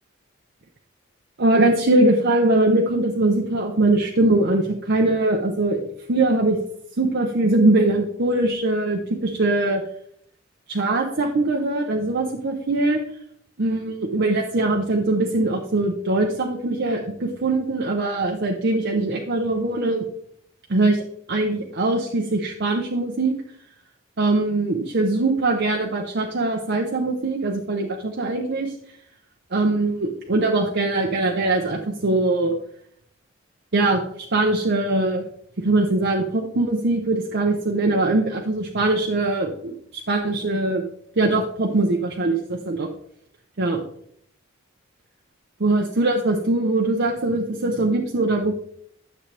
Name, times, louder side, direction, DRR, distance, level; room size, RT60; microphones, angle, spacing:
voice 1, 1.4-5.8 6.1-6.6 7.0-9.8 10.7-13.0 13.6-20.1 20.7-21.0 21.3-23.3 24.2-28.7 29.5-32.5 33.7-35.3 35.6-40.8 41.2-42.9 43.6-43.8 45.6-48.5, right 2 dB, 55° right, 1 dB, 0.8 m, -21 dB
10.0 x 7.3 x 3.4 m, 0.68 s
head